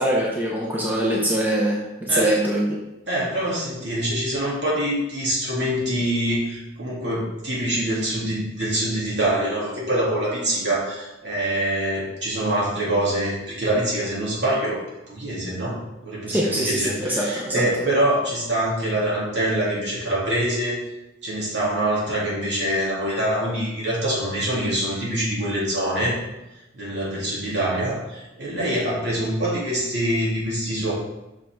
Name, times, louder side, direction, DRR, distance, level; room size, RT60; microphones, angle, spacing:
voice 1, 0.0-2.8 16.3-17.6, right 1 dB, 10° right, -4 dB, 0.9 m, -23 dB
voice 2, 3.1-14.8 15.1-20.8 21.2-26.2 26.7-30.9, right 1 dB, 60° right, -6 dB, 2.9 m, -25 dB
6.2 x 5.9 x 4.6 m, 0.98 s
head